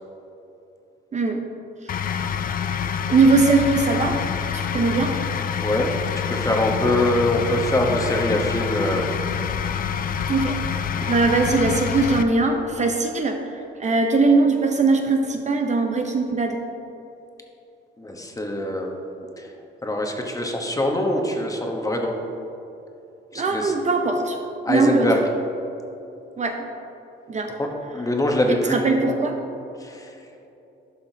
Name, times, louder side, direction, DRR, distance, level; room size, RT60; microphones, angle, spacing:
voice 1, 1.1-1.4 3.1-4.2 4.5-5.2 10.3-10.6 11.1-13.4 13.8-16.6 23.3-24.4 24.7-25.1 26.4-26.6 27.3-27.5 28.5-29.4, right 3 dB, 35° right, 4 dB, 0.6 m, -20 dB
sound 1, 1.9-12.2, left 7 dB, 45° left, 0.4 m, -26 dB
voice 2, 6.1-9.1 18.0-19.0 19.4-19.5 19.8-22.2 23.3-23.7 24.6-25.2 27.6-28.8 29.8-30.1, left 1 dB, 15° left, 2 dB, 0.9 m, -23 dB
11.5 x 5.5 x 2.7 m, 2.8 s
cardioid pair, 90°, 20 cm